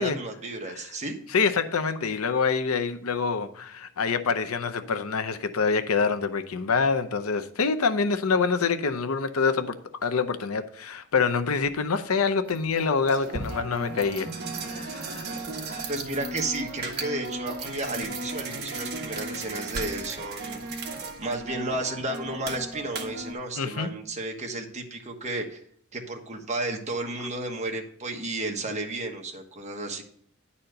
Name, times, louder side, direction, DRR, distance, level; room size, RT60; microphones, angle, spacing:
voice 1, 0.0-1.2 15.9-20.6 21.2-25.6 25.9-30.0, right 2 dB, 35° right, 3 dB, 1.3 m, -33 dB
voice 2, 1.3-9.8 10.0-14.3 14.7-15.3 23.6-23.9, left 5 dB, 90° left, 10 dB, 0.7 m, -26 dB
sound 1, 11.6-11.8 12.5-23.3, right 3 dB, 50° right, 1.4 m, -35 dB
10.5 x 4.3 x 6.5 m, 0.64 s
head